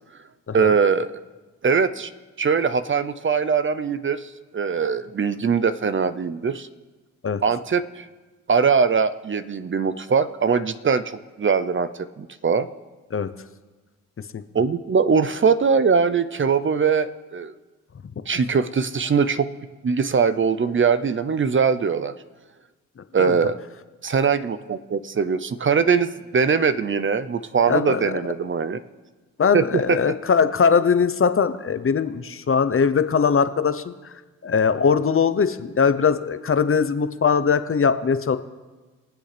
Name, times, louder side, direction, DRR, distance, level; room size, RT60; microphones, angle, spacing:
voice 1, 0.5-1.1 1.6-2.1 2.4-6.7 7.4-8.1 8.5-12.7 14.5-17.5 18.3-19.5 19.8-22.1 23.1-23.6 24.0-28.8 29.5-30.0, right 5 dB, 35° right, 12 dB, 0.7 m, -21 dB
voice 2, 27.7-28.0 29.4-33.9 34.4-38.4, left 6 dB, 40° left, 11 dB, 0.8 m, -20 dB
23.0 x 7.8 x 3.4 m, 1.2 s
supercardioid pair, 50°, 34 cm